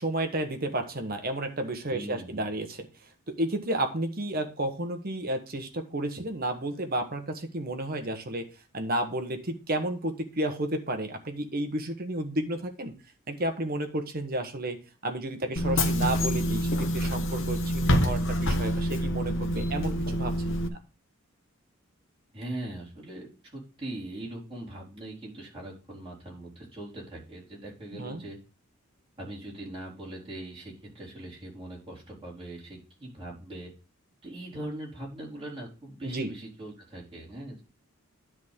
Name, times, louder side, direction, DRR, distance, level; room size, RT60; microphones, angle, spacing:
voice 1, 0.0-2.9 3.3-8.5 8.7-12.9 13.3-14.8 15.0-20.7 27.9-28.2 36.0-36.3, right 1 dB, 45° right, 6 dB, 1.2 m, -32 dB
voice 2, 1.9-2.5 22.3-28.4 29.2-33.7 34.2-37.6, right 1 dB, 25° right, -5 dB, 4.2 m, -41 dB
Bus / Engine, 15.6-20.7, equal, 60° left, 1.1 m, -27 dB
10.5 x 3.7 x 6.7 m, 0.32 s
head